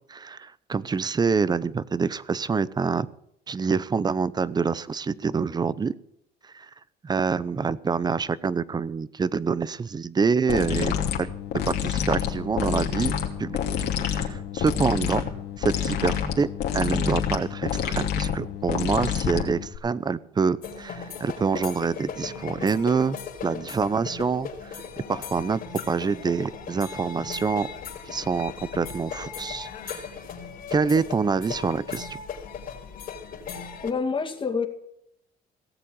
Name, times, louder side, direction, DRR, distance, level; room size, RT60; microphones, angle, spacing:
voice 1, 0.1-3.1 3.5-5.9 6.5-6.7 7.0-11.3 11.7-13.1 13.4-15.2 15.6-16.5 16.7-23.2 23.4-24.8 25.1-25.6 25.9-27.7 28.1-30.1 30.7-32.2, right 5 dB, 25° right, 19 dB, 0.7 m, -26 dB
sound 1, 10.5-19.8, left 8 dB, 75° left, 2.9 m, -28 dB
sound 2, 20.6-33.9, left 6 dB, 60° left, 3.7 m, -37 dB
voice 2, 33.8-34.7, left 5 dB, 30° left, 5 dB, 2.3 m, -27 dB
17.5 x 7.5 x 8.8 m, 0.73 s
cardioid pair, 110°, 17 cm